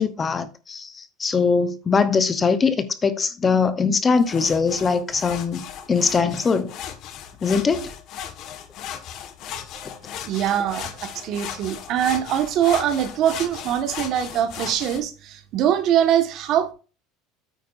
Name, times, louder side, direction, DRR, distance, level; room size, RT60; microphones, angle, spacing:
voice 1, 0.0-6.7 7.4-7.9, left 5 dB, 20° left, 0.9 m, -21 dB
sound 1, 4.2-15.0, left 9 dB, 50° left, 1.5 m, -36 dB
voice 2, 10.2-16.7, right 10 dB, 50° right, 1.5 m, -23 dB
9.0 x 9.0 x 2.6 m
supercardioid pair, 135°, 0 cm